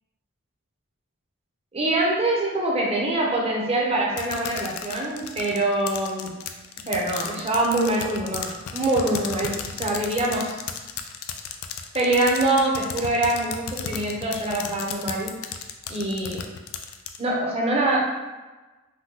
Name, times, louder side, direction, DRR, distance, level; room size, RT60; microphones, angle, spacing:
voice 1, 1.7-6.3 6.9-10.6 11.9-15.4 15.9-16.4 17.2-18.1, right 2 dB, 30° right, -2 dB, 0.6 m, -24 dB
sound 1, 4.2-17.2, left 8 dB, 80° left, 0.3 m, -34 dB
2.7 x 2.2 x 3.6 m, 1.2 s
head